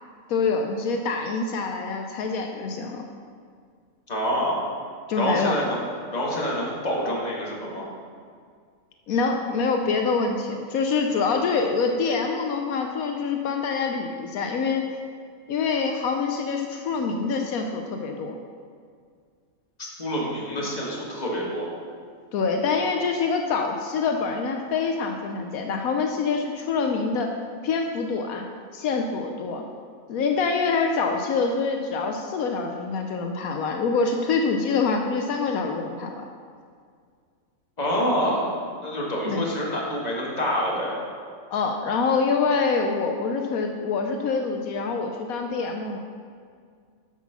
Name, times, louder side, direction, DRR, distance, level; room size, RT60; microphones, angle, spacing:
voice 1, 0.3-3.1 5.1-5.5 9.1-14.8 15.5-18.4 22.3-27.3 27.6-28.4 28.7-29.6 30.1-36.2 39.2-39.5 41.5-46.0, left 4 dB, 80° left, 3 dB, 1.1 m, -25 dB
voice 2, 4.1-4.6 5.2-5.8 6.1-7.8 19.8-21.7 37.8-38.5 38.8-41.0, equal, 30° left, -3 dB, 1.7 m, -26 dB
8.4 x 6.1 x 5.7 m, 2.1 s
omnidirectional pair, 1.5 m